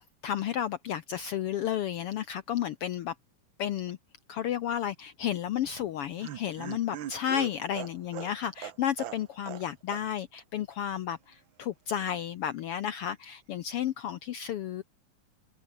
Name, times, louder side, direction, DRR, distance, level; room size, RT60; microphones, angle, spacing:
voice 1, 0.0-3.1 3.6-4.0 4.3-14.8, left 10 dB, 80° left, 1.3 m, -32 dB
Laughter, 5.6-9.7 9.9-10.0 10.3-10.4, right 11 dB, 75° right, 1.1 m, -40 dB
omnidirectional pair, 3.6 m